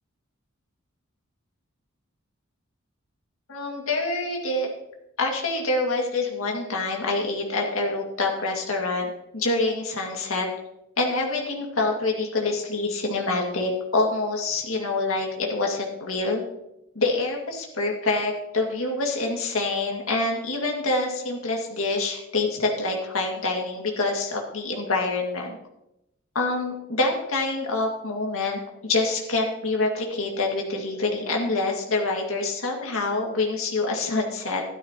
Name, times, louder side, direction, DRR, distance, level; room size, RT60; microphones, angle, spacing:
voice 1, 3.5-4.7 5.2-10.5 11.0-16.4 17.0-25.5 26.3-34.6, left 2 dB, 80° left, 0 dB, 2.1 m, -26 dB
12.5 x 12.5 x 2.9 m, 0.86 s
head